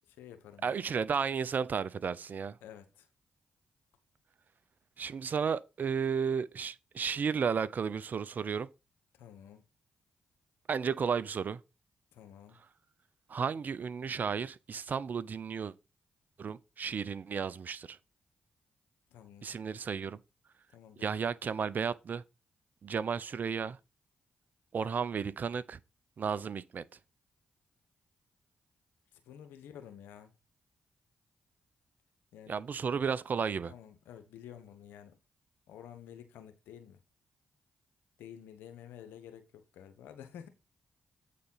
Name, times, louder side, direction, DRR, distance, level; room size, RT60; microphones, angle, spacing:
voice 1, 0.1-0.8 2.6-3.1 9.1-9.6 12.1-12.6 19.1-19.5 20.7-21.2 29.2-30.3 32.3-32.6 33.7-35.2 35.7-37.0 38.2-40.5, left 9 dB, 80° left, 1.2 m, -51 dB
voice 2, 0.6-2.6 5.0-8.7 10.7-11.6 13.3-15.7 16.4-18.0 19.4-20.2 21.0-22.2 22.8-23.8 24.7-25.8 26.2-26.8 32.5-33.7, right 6 dB, 55° right, 0.7 m, -33 dB
8.5 x 4.2 x 5.6 m
hypercardioid pair, 40°, 4 cm